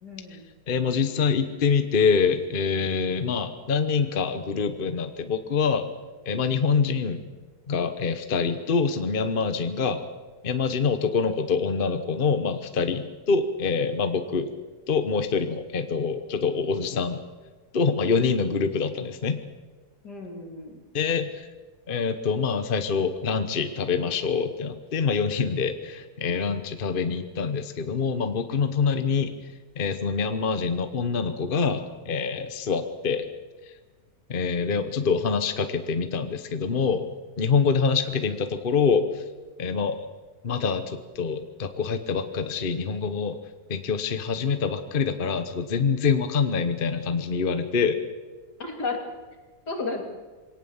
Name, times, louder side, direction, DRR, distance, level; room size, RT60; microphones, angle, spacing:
voice 1, 0.0-0.5 20.0-20.8 48.6-49.0 49.7-50.0, left 3 dB, 80° left, 3 dB, 3.5 m, -33 dB
voice 2, 0.7-5.9 6.3-7.2 7.7-10.0 10.4-14.5 14.9-17.2 17.7-19.4 20.9-21.5 21.9-29.3 29.8-33.3 34.3-37.0 37.4-39.2 39.6-40.0 40.4-43.4 43.7-48.0, left 5 dB, 35° left, 9 dB, 1.2 m, -25 dB
23.0 x 18.0 x 7.2 m, 1.3 s
omnidirectional pair, 1.8 m